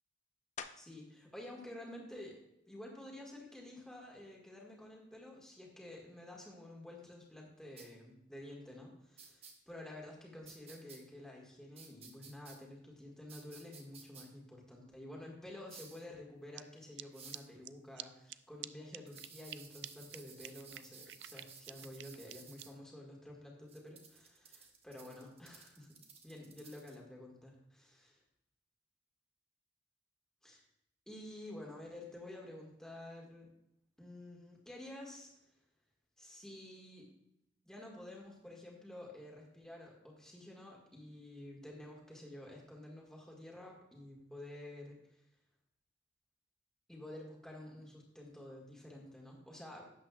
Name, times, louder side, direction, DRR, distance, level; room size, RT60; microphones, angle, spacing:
sound 1, 0.6-1.2 1.7-6.1 6.7-11.8 12.1-17.8, left 6 dB, 40° left, 0.5 m, -59 dB
voice 1, 0.8-2.4 2.7-26.0 26.2-28.2 30.4-30.6 31.1-33.5 34.0-35.3 36.2-37.1 37.6-45.0 46.9-49.9, left 1 dB, 5° left, -2 dB, 1.8 m, -50 dB
sound 2, 7.8-7.9 9.2-9.5 10.5-11.0 11.8-12.6 13.3-14.2 15.7-16.0 17.1-17.5 19.1-22.7 23.7-27.0, right 5 dB, 35° right, 1.1 m, -55 dB
sound 3, 16.5-16.6 17.0-17.1 17.3-17.4 17.6-17.7 18.0-18.1 18.3-18.4 18.6-18.7 18.9-19.6 19.8-19.9 20.1-20.2 20.4-22.6, right 15 dB, 65° right, 0.3 m, -46 dB
11.5 x 8.3 x 2.4 m, 0.80 s
head